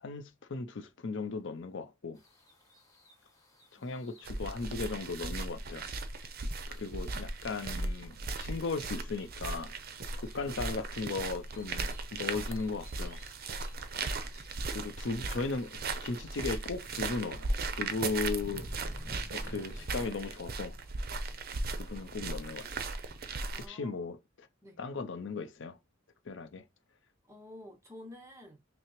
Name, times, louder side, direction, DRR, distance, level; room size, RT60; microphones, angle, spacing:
voice 1, 0.0-2.2 3.7-5.9 6.7-9.7 10.2-13.2 14.6-18.9 19.3-20.7 21.7-22.9 23.7-24.2 24.8-25.8 26.3-26.6, left 4 dB, 60° left, 0.6 m, -37 dB
sound 1, 2.1-20.0, equal, 15° left, 1.3 m, -56 dB
sound 2, 4.2-23.6, right 3 dB, 50° right, 0.6 m, -37 dB
voice 2, 23.5-24.0 24.6-24.8 27.2-28.6, left 1 dB, 15° right, 0.9 m, -50 dB
5.7 x 2.0 x 3.1 m
head